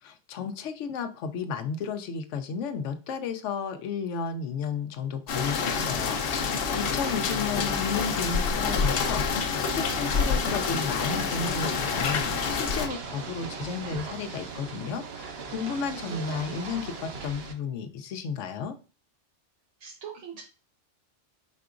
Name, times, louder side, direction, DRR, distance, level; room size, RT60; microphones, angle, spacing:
voice 1, 0.0-18.8, left 6 dB, 90° left, 9 dB, 1.0 m, -33 dB
sound 1, 5.3-12.9, left 5 dB, 60° left, 0.8 m, -27 dB
voice 2, 7.3-7.8 16.1-16.9 19.8-20.4, right 5 dB, 85° right, 0 dB, 1.1 m, -42 dB
Ocean / Boat Water vehicle, 9.7-17.5, right 5 dB, 60° right, 1.0 m, -39 dB
4.7 x 4.2 x 2.4 m, 0.35 s
omnidirectional pair, 1.2 m